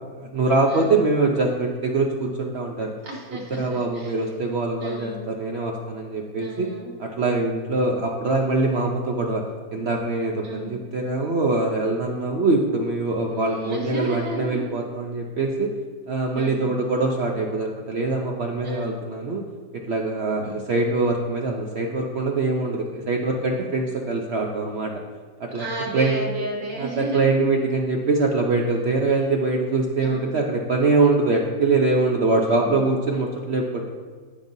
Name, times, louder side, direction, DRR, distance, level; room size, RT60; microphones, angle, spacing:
voice 1, 0.2-2.9 3.5-6.7 7.0-9.4 9.7-15.7 16.1-19.4 19.9-24.9 25.4-25.7 25.9-26.1 26.8-33.9, right 3 dB, 70° right, 1 dB, 0.6 m, -23 dB
voice 2, 0.7-1.1 3.0-4.2 4.8-5.3 6.4-6.9 10.4-10.8 13.3-14.7 16.4-16.8 18.6-19.0 20.4-20.6 25.5-27.4 30.0-30.4 32.5-32.9, right 2 dB, 90° right, -3 dB, 2.4 m, -33 dB
15.0 x 5.3 x 2.7 m, 1.5 s
omnidirectional pair, 1.9 m